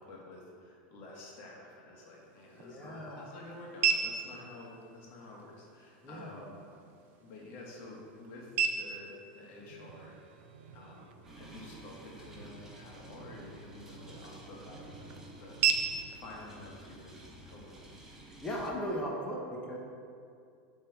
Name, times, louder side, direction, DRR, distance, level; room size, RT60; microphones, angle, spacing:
voice 1, 0.0-6.6 7.2-10.2 10.7-15.0 15.4-17.2 17.4-17.7, left 2 dB, 55° left, -2 dB, 1.7 m, -50 dB
sound 1, 2.1-18.1, right 7 dB, 45° right, 0.6 m, -38 dB
voice 2, 2.6-3.3 6.0-6.4 18.4-19.8, equal, 20° left, -1 dB, 1.1 m, -37 dB
sound 2, 9.5-16.3, right 6 dB, 90° right, 0.5 m, -55 dB
sound 3, 11.2-18.7, equal, 10° right, 1.2 m, -52 dB
8.6 x 3.7 x 4.6 m, 2.4 s
supercardioid pair, 125°, 5 cm